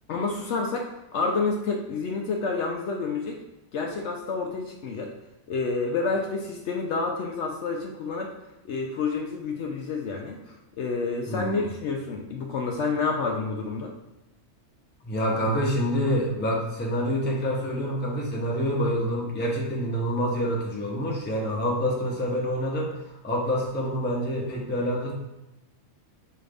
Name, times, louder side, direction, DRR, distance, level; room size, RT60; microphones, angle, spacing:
voice 1, 0.1-3.4 3.7-5.1 5.5-8.3 8.6-13.9, left 4 dB, 65° left, 1 dB, 0.8 m, -29 dB
voice 2, 11.3-11.7 15.0-22.9 23.2-25.1, equal, 10° left, -3 dB, 0.5 m, -27 dB
5.4 x 2.5 x 3.3 m, 0.95 s
omnidirectional pair, 1.4 m